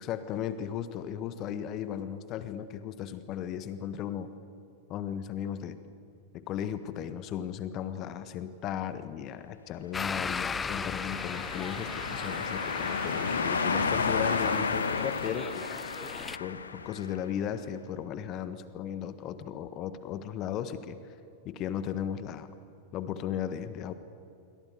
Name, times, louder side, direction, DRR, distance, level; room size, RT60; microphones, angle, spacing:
voice 1, 0.0-4.3 4.9-5.8 6.3-15.7 16.4-21.0 21.4-22.5 22.9-23.9, left 9 dB, 35° left, 13 dB, 1.4 m, -36 dB
sound 1, 9.9-16.4, left 5 dB, 15° left, 0.7 m, -37 dB
sound 2, 10.4-17.2, left 5 dB, 75° left, 1.3 m, -32 dB
27.0 x 24.0 x 8.1 m, 2.7 s
figure-of-eight pair, 90°, 0 cm